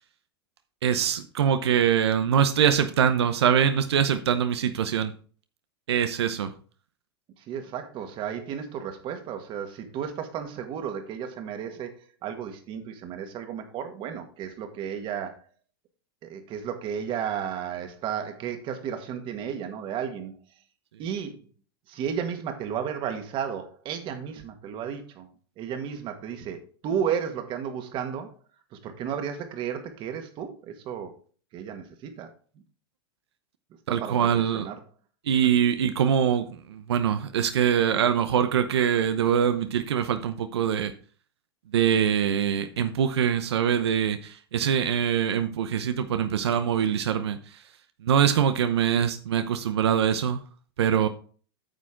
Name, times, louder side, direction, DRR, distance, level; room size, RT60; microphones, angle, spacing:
voice 1, 0.8-5.1 5.9-6.5 33.9-34.7 35.2-40.9 41.7-47.6 48.0-50.4 50.8-51.1, right 8 dB, 85° right, 0.8 m, -23 dB
voice 2, 7.4-11.9 12.2-15.4 16.2-20.4 21.0-21.4 21.9-25.3 25.6-28.3 28.8-31.1 31.5-32.3 34.0-34.8, right 8 dB, 40° right, 1.7 m, -33 dB
9.2 x 6.3 x 3.8 m
hypercardioid pair, 125°, 13 cm